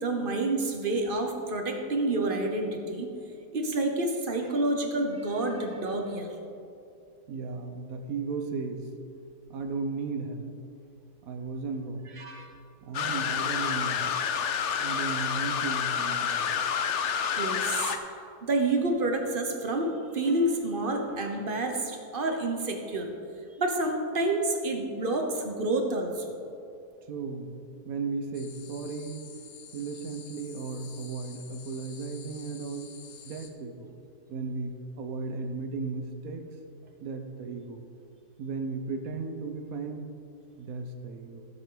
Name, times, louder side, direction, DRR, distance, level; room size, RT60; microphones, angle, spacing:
voice 1, 0.0-3.1 3.5-6.3 12.2-12.5 17.4-17.9 18.5-23.1 23.6-26.3, right 2 dB, 40° right, 3 dB, 0.9 m, -28 dB
voice 2, 7.3-8.9 9.5-10.5 11.2-12.1 12.8-14.2 14.8-16.6 27.1-27.6 27.8-29.3 29.7-33.0 33.2-33.9 34.3-36.4 37.0-37.9 38.4-40.1 40.6-41.5, right 4 dB, 65° right, 5 dB, 1.3 m, -35 dB
sound 1, 12.9-18.0, left 7 dB, 65° left, 0.8 m, -29 dB
sound 2, 28.3-33.5, left 7 dB, 80° left, 1.4 m, -49 dB
13.5 x 7.8 x 3.9 m, 2.6 s
omnidirectional pair, 1.7 m